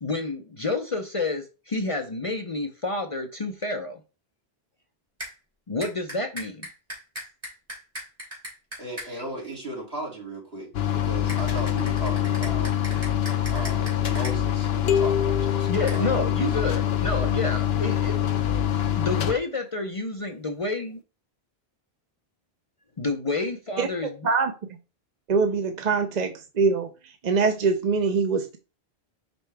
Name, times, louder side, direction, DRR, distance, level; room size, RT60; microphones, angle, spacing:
voice 1, 0.0-4.0 5.7-6.7 9.1-9.2 15.7-18.6 19.0-21.0 23.0-24.1, left 2 dB, 35° left, 5 dB, 0.7 m, -29 dB
sound 1, 5.2-5.3 5.8-9.1 11.3-14.3 15.9-16.0, equal, 30° right, 3.2 m, -38 dB
voice 2, 8.8-12.7 13.5-16.3, right 1 dB, 70° right, -2 dB, 2.8 m, -37 dB
sound 2, 10.7-19.3, left 10 dB, 75° left, 0.9 m, -25 dB
sound 3, 14.9-16.8, left 7 dB, 90° left, 1.2 m, -28 dB
voice 3, 25.3-28.6, right 4 dB, 50° right, 6 dB, 0.7 m, -24 dB
5.5 x 5.3 x 3.4 m, 0.32 s
omnidirectional pair, 1.1 m